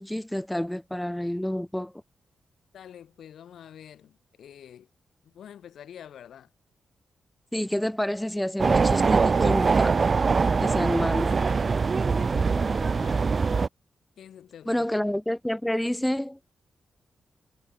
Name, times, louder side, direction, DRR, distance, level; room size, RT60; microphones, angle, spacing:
voice 1, 0.0-1.9 7.5-10.0 10.6-11.4 14.7-16.4, left 1 dB, 5° left, 0.7 m, -28 dB
voice 2, 2.7-4.9 5.2-6.5 10.2-10.9 12.0-13.4 14.2-14.9, left 9 dB, 85° left, 5.6 m, -47 dB
sound 1, 8.6-13.7, right 4 dB, 40° right, 0.3 m, -23 dB
cardioid pair, 110°, 0 cm